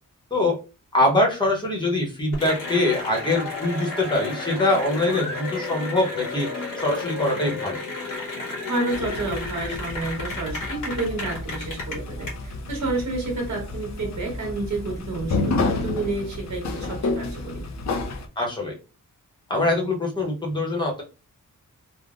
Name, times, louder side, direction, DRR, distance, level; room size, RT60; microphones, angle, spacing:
voice 1, 0.9-6.5 6.8-7.8 18.4-18.7 19.5-21.0, left 2 dB, 15° left, -1 dB, 0.8 m, -23 dB
Cheering / Applause, 2.3-12.3, left 3 dB, 85° left, 1.1 m, -32 dB
voice 2, 8.7-17.7, right 2 dB, 60° right, 0 dB, 1.3 m, -30 dB
sound 1, 8.9-18.3, left 3 dB, 55° left, 0.5 m, -30 dB
3.4 x 2.1 x 2.5 m, 0.31 s
wide cardioid pair, 170°, 32 cm